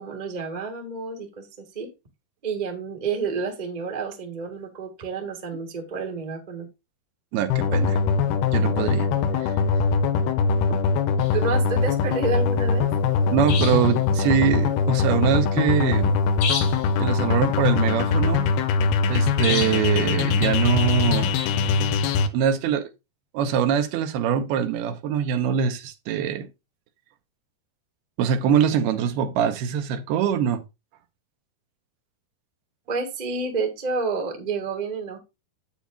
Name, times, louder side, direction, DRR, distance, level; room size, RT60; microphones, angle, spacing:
voice 1, 0.0-1.9 2.4-6.7 11.3-12.9 32.9-35.2, right 4 dB, 40° right, 0.6 m, -29 dB
voice 2, 7.3-8.0 8.5-9.1 9.4-9.5 13.3-16.1 17.0-18.5 19.1-22.9 23.3-26.5 28.2-30.6, right 8 dB, 90° right, 2.9 m, -23 dB
sound 1, 7.5-22.3, left 5 dB, 90° left, 2.8 m, -22 dB
sound 2, 11.2-11.3 13.5-14.0 16.4-16.9 19.4-19.9, left 6 dB, 75° left, 3.8 m, -29 dB
8.9 x 8.3 x 2.4 m
omnidirectional pair, 4.4 m